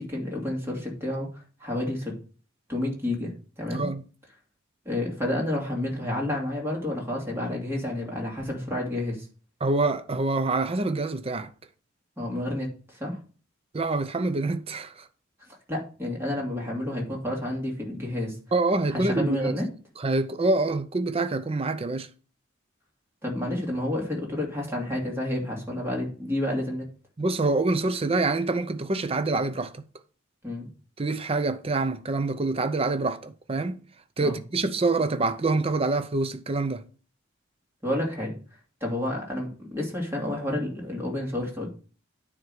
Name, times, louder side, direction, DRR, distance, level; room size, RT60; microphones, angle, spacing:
voice 1, 0.0-2.1 2.7-3.9 4.8-9.3 12.2-13.2 15.7-18.4 18.9-19.7 23.2-26.9 30.4-30.7 34.2-34.4 37.8-38.3 38.8-41.7, left 1 dB, 15° right, 2.7 m, -30 dB
voice 2, 3.7-4.0 9.6-11.5 13.7-14.9 18.5-19.5 20.0-22.1 27.2-29.8 31.0-33.8 34.2-36.8, right 3 dB, 30° right, 0.6 m, -26 dB
9.5 x 3.7 x 6.4 m
head